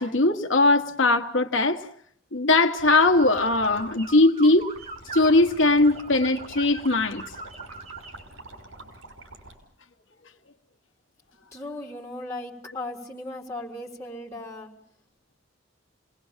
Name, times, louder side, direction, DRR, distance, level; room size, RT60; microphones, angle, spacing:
voice 1, 0.0-1.9 2.3-4.7 5.1-7.2, left 2 dB, 80° left, 1.2 m, -20 dB
sound 1, 2.8-9.5, right 2 dB, 85° right, 6.0 m, -45 dB
sound 2, 2.9-8.2, right 5 dB, 30° right, 1.6 m, -41 dB
voice 2, 11.5-14.7, left 1 dB, 15° left, 4.1 m, -37 dB
28.5 x 19.5 x 7.3 m
head